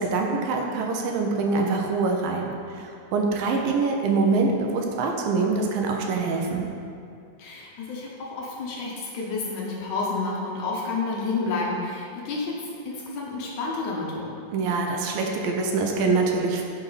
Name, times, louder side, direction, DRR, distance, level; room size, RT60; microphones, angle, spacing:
voice 1, 0.0-6.7 14.5-16.6, right 3 dB, 80° right, 2 dB, 2.5 m, -24 dB
voice 2, 7.4-14.3, left 3 dB, 65° left, -3 dB, 2.2 m, -30 dB
11.0 x 5.9 x 4.1 m, 2.4 s
omnidirectional pair, 4.1 m